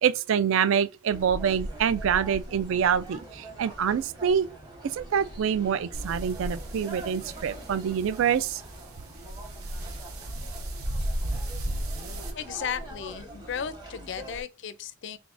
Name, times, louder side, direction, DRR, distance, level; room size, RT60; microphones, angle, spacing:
voice 1, 0.0-4.5 4.8-8.6, right 8 dB, 65° right, 0.3 m, -26 dB
sound 1, 1.1-14.4, right 1 dB, 20° right, 0.9 m, -43 dB
sound 2, 5.9-12.3, right 1 dB, 80° right, 0.8 m, -35 dB
voice 2, 12.3-15.2, left 7 dB, 55° left, 0.4 m, -35 dB
3.9 x 3.5 x 2.5 m
head